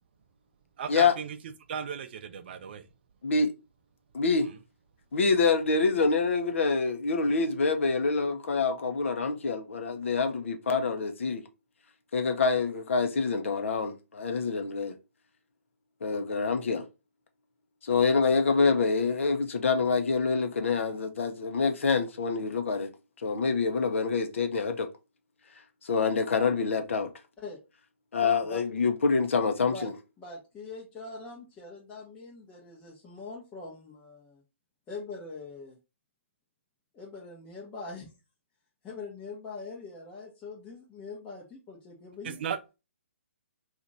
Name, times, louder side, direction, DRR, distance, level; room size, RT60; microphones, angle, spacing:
voice 1, 0.8-1.4 1.7-2.9 42.2-42.7, right 7 dB, 50° right, 0.5 m, -35 dB
voice 2, 4.1-4.5 5.1-11.4 12.1-14.9 16.0-16.9 17.8-22.9 23.2-24.9 25.8-27.1 28.1-29.9, left 4 dB, 65° left, 0.7 m, -26 dB
voice 3, 28.2-28.6 29.6-29.9 30.2-34.4 34.9-35.8 36.9-38.1 38.8-42.4, left 3 dB, 15° left, 0.8 m, -42 dB
2.9 x 2.5 x 3.9 m
figure-of-eight pair, 140°, 7 cm